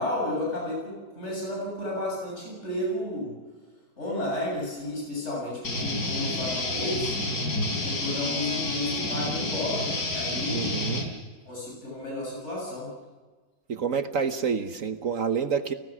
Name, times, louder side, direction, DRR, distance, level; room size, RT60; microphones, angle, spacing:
voice 1, 0.0-3.3 4.0-7.1 7.8-10.8 11.5-12.9, left 1 dB, 45° left, -3 dB, 7.7 m, -32 dB
sound 1, 5.6-11.0, left 2 dB, 85° left, 4.8 m, -29 dB
voice 2, 10.5-11.1 13.7-15.7, right 6 dB, 60° right, 9 dB, 1.3 m, -28 dB
30.0 x 18.5 x 6.2 m, 1.3 s
omnidirectional pair, 1.7 m